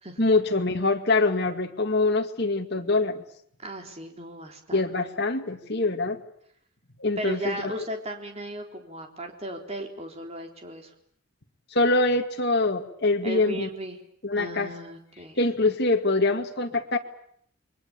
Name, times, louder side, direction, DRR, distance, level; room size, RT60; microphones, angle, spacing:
voice 1, 0.2-3.2 4.7-6.2 7.0-7.7 11.7-13.7 14.2-14.7 15.4-17.0, left 2 dB, 50° left, 4 dB, 2.3 m, -24 dB
voice 2, 3.6-4.8 7.2-10.9 13.2-14.0 14.4-15.4, right 1 dB, 30° right, 4 dB, 3.7 m, -36 dB
29.0 x 23.0 x 8.6 m, 0.66 s
head